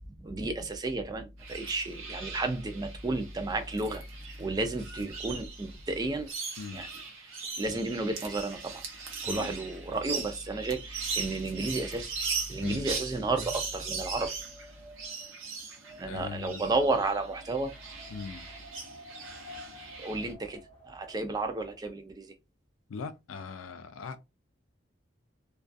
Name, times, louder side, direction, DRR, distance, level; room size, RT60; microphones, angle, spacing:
voice 1, 0.0-4.0 4.4-6.3 6.7-6.9 7.2-7.3 7.6-8.8 9.2-12.2 12.5-14.4 16.0-17.7 20.0-22.3, right 2 dB, 20° right, 0.3 m, -32 dB
sound 1, 1.4-20.3, right 5 dB, 75° right, 0.7 m, -40 dB
Wind, 13.5-21.9, left 1 dB, 30° left, 0.7 m, -53 dB
voice 2, 16.0-16.7 18.1-18.5 22.9-24.2, left 5 dB, 85° left, 0.4 m, -40 dB
2.3 x 2.3 x 2.5 m
head